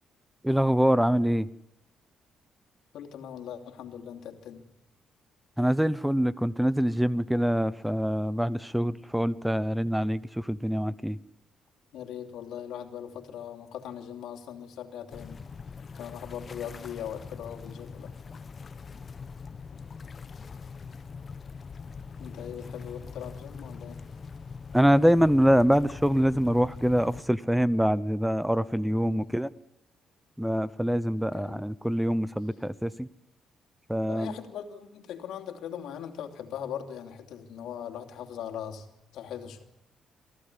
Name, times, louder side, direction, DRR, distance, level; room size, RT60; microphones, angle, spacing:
voice 1, 0.4-1.5 5.6-11.2 24.7-29.5 30.4-33.1 33.9-34.3, equal, 5° right, 17 dB, 0.8 m, -25 dB
voice 2, 2.9-4.6 11.9-15.4 16.0-18.1 22.2-24.0 29.0-29.3 31.3-31.6 34.1-38.9 39.1-39.6, left 9 dB, 80° left, 5 dB, 2.9 m, -40 dB
sound 1, 15.1-27.2, left 5 dB, 40° left, 0.9 m, -42 dB
24.5 x 15.5 x 9.9 m, 0.84 s
cardioid pair, 90°, 0 cm